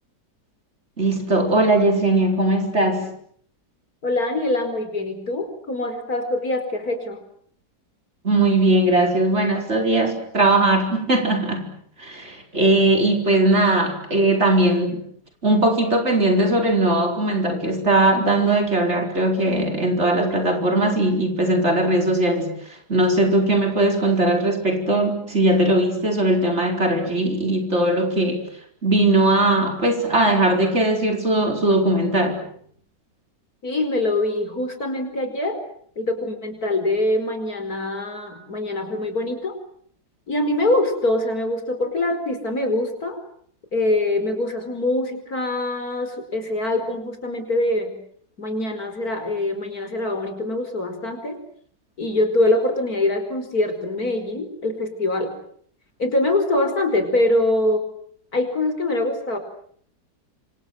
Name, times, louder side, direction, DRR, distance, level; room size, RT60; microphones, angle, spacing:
voice 1, 1.0-3.1 8.2-11.7 12.0-15.1 15.4-22.6 22.9-28.5 28.8-32.5, right 2 dB, 40° right, 3 dB, 4.9 m, -19 dB
voice 2, 4.0-7.2 33.6-35.6 36.0-39.6 40.3-43.2 43.7-48.0 48.4-51.4 52.0-55.3 56.0-57.9 58.3-59.4, left 2 dB, 60° left, 7 dB, 5.4 m, -24 dB
27.0 x 27.0 x 7.8 m, 0.62 s
omnidirectional pair, 1.8 m